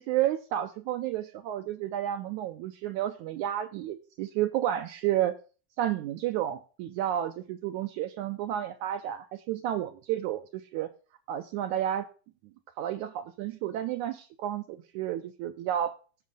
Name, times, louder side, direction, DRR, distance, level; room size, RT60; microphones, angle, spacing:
voice 1, 0.0-5.3 5.8-10.4 10.7-10.9 11.3-12.1 12.8-16.0, right 12 dB, 80° right, 8 dB, 1.8 m, -31 dB
17.0 x 6.3 x 3.7 m, 0.37 s
omnidirectional pair, 3.9 m